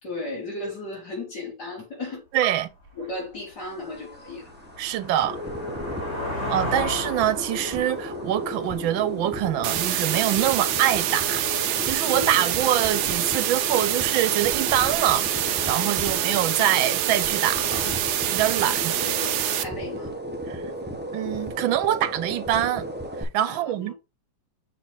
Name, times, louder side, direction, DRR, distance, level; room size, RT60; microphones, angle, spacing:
voice 1, 0.0-2.2 2.9-4.5 6.0-6.1 12.1-12.4 15.9-16.3 18.6-20.2 23.5-23.9, left 2 dB, 55° left, 4.1 m, -36 dB
voice 2, 2.3-2.7 4.8-5.4 6.5-18.0 18.3-19.0 20.5-20.6 21.1-22.9 23.2-23.9, right 12 dB, 90° right, 1.5 m, -25 dB
sound 1, 2.8-2.9 3.4-10.0, left 1 dB, 35° left, 2.8 m, -35 dB
sound 2, 3.6-23.2, equal, 15° right, 0.3 m, -34 dB
sound 3, 9.6-19.6, right 12 dB, 70° right, 1.1 m, -26 dB
6.8 x 4.3 x 3.5 m
omnidirectional pair, 2.1 m